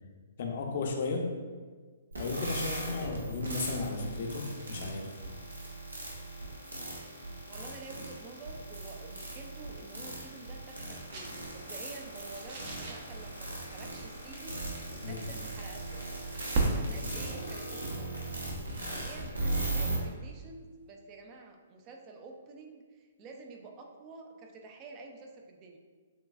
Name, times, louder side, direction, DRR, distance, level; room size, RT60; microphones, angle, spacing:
voice 1, 0.4-1.3 2.2-4.4 4.7-5.1 15.0-15.3 17.0-17.1, left 3 dB, 55° left, 1 dB, 0.7 m, -34 dB
sound 1, 2.1-20.0, right 2 dB, 85° right, 0.9 m, -38 dB
voice 2, 7.5-14.6 14.9-16.0 16.7-18.3 18.8-19.9 20.2-25.8, right 3 dB, 30° right, 2 dB, 0.5 m, -49 dB
sound 2, 9.8-19.8, right 3 dB, 50° right, 0.8 m, -39 dB
6.4 x 2.3 x 2.4 m, 1.5 s
figure-of-eight pair, 130°, 0 cm